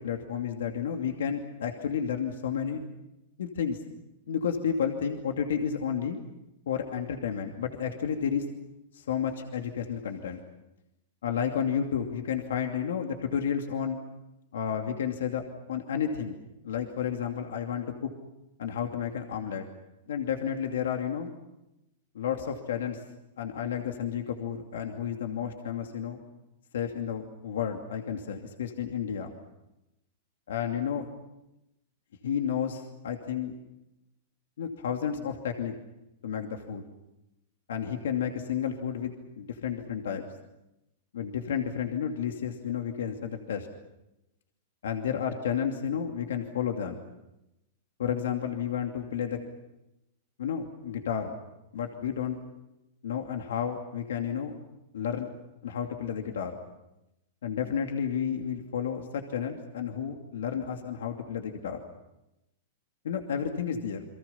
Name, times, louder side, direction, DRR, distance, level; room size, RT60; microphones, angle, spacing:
voice 1, 0.0-2.8 3.4-3.8 4.3-6.2 6.7-8.5 8.9-10.4 11.2-14.0 14.5-16.4 16.6-18.1 18.6-19.7 20.1-21.3 22.1-23.0 23.4-26.2 26.7-29.3 30.5-31.1 32.2-33.5 34.6-35.7 36.2-36.8 37.7-40.2 41.1-43.7 44.8-47.0 48.0-49.4 50.4-51.4 51.7-52.4 53.0-54.5 54.9-55.3 55.6-56.6 57.4-61.8 63.0-64.0, left 8 dB, 85° left, 4 dB, 2.6 m, -31 dB
29.5 x 24.0 x 5.7 m, 0.92 s
hypercardioid pair, 140°, 0 cm